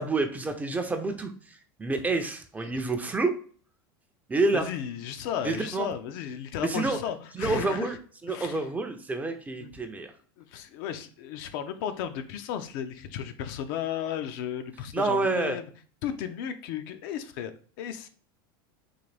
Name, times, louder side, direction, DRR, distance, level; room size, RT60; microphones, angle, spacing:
voice 1, 0.0-3.3 4.3-4.7 5.4-5.9 6.6-7.0 7.4-8.0 8.2-10.1 14.9-15.6, right 3 dB, 15° right, 6 dB, 0.4 m, -28 dB
voice 2, 4.5-8.0 8.2-8.7 9.6-9.7 10.4-15.7 16.0-18.1, left 9 dB, 65° left, 9 dB, 0.5 m, -34 dB
3.8 x 2.6 x 3.2 m, 0.43 s
supercardioid pair, 125°, 12 cm